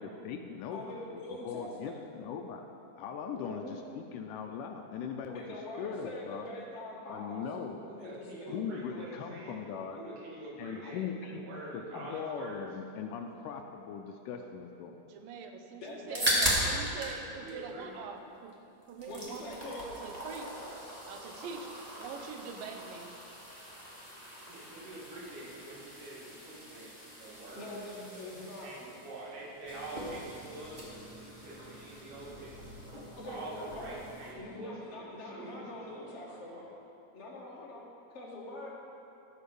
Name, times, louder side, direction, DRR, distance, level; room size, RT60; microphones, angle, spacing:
voice 1, 0.0-0.8 1.1-2.7 3.0-5.4 5.8-6.5 7.1-7.8 8.5-10.0 10.6-11.4 11.7-15.0, left 6 dB, 80° left, 4 dB, 2.0 m, -40 dB
voice 2, 0.7-1.9 3.3-3.8 5.3-7.5 8.0-8.5 15.8-16.6 19.1-20.0 27.5-28.7 33.2-33.9 34.3-36.6 37.1-37.9 38.1-38.7, left 1 dB, 50° left, -5 dB, 0.8 m, -44 dB
voice 3, 7.3-9.6 9.9-11.0 11.3-12.6 16.6-16.7 17.3-17.9 24.5-26.9 27.2-27.8 28.6-32.9 33.3-36.8, right 2 dB, 65° right, -6 dB, 3.6 m, -46 dB
voice 4, 15.1-16.3 16.6-18.5 18.9-19.7 20.0-20.5 21.1-21.7 22.0-23.2, right 6 dB, 90° right, 5 dB, 2.5 m, -44 dB
sound 1, 15.9-17.2 17.5-18.5 18.8-34.3, equal, 30° right, 0.6 m, -39 dB
13.0 x 5.2 x 6.8 m, 2.7 s
omnidirectional pair, 3.9 m